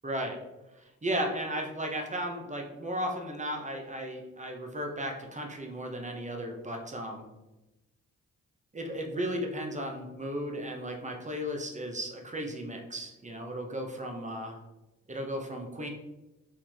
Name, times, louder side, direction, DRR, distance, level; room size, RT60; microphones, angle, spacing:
voice 1, 0.0-0.4 1.0-7.3 8.7-14.6 15.1-15.9, equal, 20° right, 2 dB, 1.1 m, -35 dB
4.7 x 3.0 x 3.6 m, 1.0 s
supercardioid pair, 45°, 35 cm